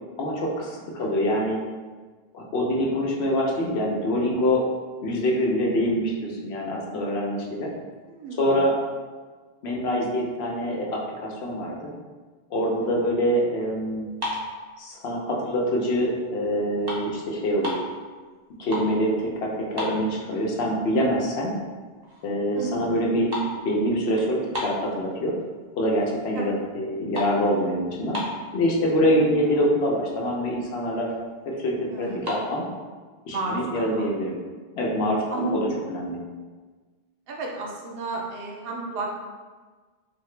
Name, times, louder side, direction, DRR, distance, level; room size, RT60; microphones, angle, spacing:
voice 1, 0.2-1.6 2.3-4.6 5.0-7.7 8.4-8.7 9.6-11.9 12.5-14.1 14.8-17.8 18.6-21.5 22.2-23.3 23.6-25.3 25.8-28.2 28.5-31.1 31.5-32.6 33.2-34.4 34.7-36.2, equal, 85° left, -2 dB, 0.9 m, -25 dB
voice 2, 1.0-1.3 8.1-8.6 12.8-13.2 22.5-22.9 26.3-26.6 29.1-29.6 31.9-32.6 33.3-34.1 35.3-36.0 37.3-39.1, right 2 dB, 70° right, -1 dB, 0.8 m, -33 dB
sound 1, 14.0-15.4 15.9-16.2 16.5-17.9 18.4-19.0 19.3-19.4 19.7-20.6 21.0-21.1 21.7-21.8 22.0-22.4 22.6-25.4 25.9-26.3 26.6-28.6 29.3-29.4 29.6-29.8 30.3-30.4 30.6-31.3 32.0-32.4, left 1 dB, 30° right, 0.6 m, -34 dB
2.8 x 2.5 x 3.1 m, 1.4 s
omnidirectional pair, 1.0 m